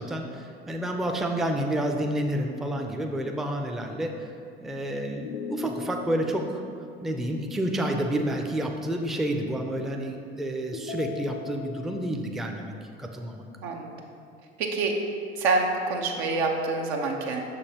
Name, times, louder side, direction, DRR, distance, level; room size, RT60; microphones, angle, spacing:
voice 1, 0.0-4.1 4.6-6.6 7.0-12.7 13.0-13.4, right 1 dB, ahead, 3 dB, 0.4 m, -29 dB
sound 1, 5.2-8.4 10.7-12.1, left 6 dB, 85° left, 0.5 m, -41 dB
voice 2, 13.6-13.9 14.6-14.9 15.4-17.4, right 3 dB, 75° right, 1 dB, 0.8 m, -26 dB
6.4 x 5.3 x 2.9 m, 2.4 s
hypercardioid pair, 65°, 32 cm